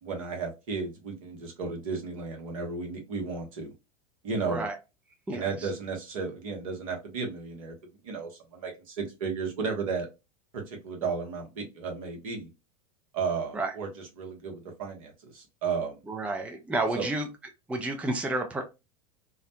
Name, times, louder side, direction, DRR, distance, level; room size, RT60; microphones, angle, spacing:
voice 1, 0.0-3.7 4.2-4.7 5.3-7.7 8.0-10.1 10.5-12.5 13.1-16.0 16.9-17.1, right 5 dB, 65° right, 1.0 m, -34 dB
voice 2, 16.1-17.3 17.7-18.6, right 2 dB, 5° right, 0.5 m, -30 dB
2.5 x 2.0 x 2.8 m
figure-of-eight pair, 85°, 20 cm